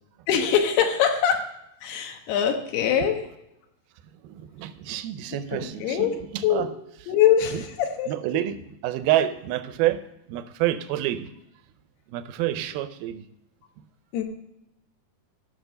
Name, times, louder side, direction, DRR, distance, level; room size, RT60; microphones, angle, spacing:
voice 1, 0.3-1.4 1.8-3.2 5.5-6.1 6.4-6.7 7.1-8.1 14.1-14.2, left 9 dB, 80° left, 4 dB, 3.3 m, -23 dB
voice 2, 4.2-6.7 7.5-7.6 8.1-8.6 8.8-10.0 10.3-11.3 12.1-13.2, right 13 dB, 80° right, 12 dB, 2.3 m, -28 dB
13.5 x 6.2 x 6.7 m, 0.83 s
omnidirectional pair, 4.7 m